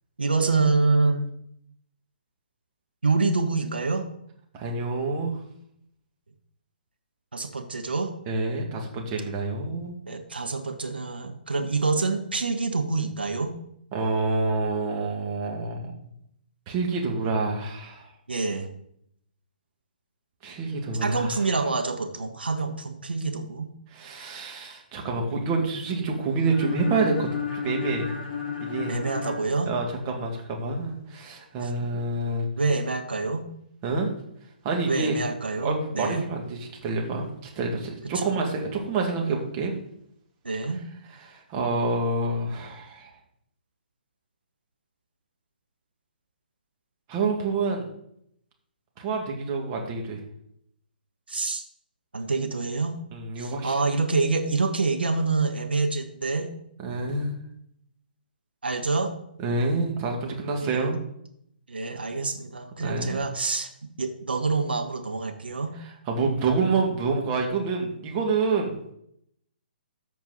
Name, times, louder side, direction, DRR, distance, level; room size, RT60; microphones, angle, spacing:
voice 1, 0.2-1.3 3.0-4.1 7.3-8.1 10.1-13.6 18.3-18.7 21.0-23.7 28.9-29.7 31.6-32.0 32.6-33.5 34.8-36.2 40.4-40.8 51.3-51.6 52.1-53.0 53.4-56.5 58.6-59.1 60.6-60.8 61.7-63.7 64.0-65.7, right 3 dB, 80° right, 5 dB, 1.2 m, -26 dB
voice 2, 4.5-5.4 8.3-10.0 13.9-15.9 16.7-18.1 20.4-21.4 23.9-28.1 28.6-29.0 29.7-32.5 33.8-34.1 34.6-35.2 35.6-39.7 41.2-43.1 47.1-47.9 49.0-50.2 53.1-53.7 56.8-57.4 59.4-61.0 62.8-63.2 66.1-68.9, right 3 dB, 30° right, 1 dB, 2.1 m, -27 dB
sound 1, 26.5-30.4, left 7 dB, 30° left, 3.0 m, -33 dB
13.5 x 4.7 x 4.1 m, 0.72 s
figure-of-eight pair, 130°, 5 cm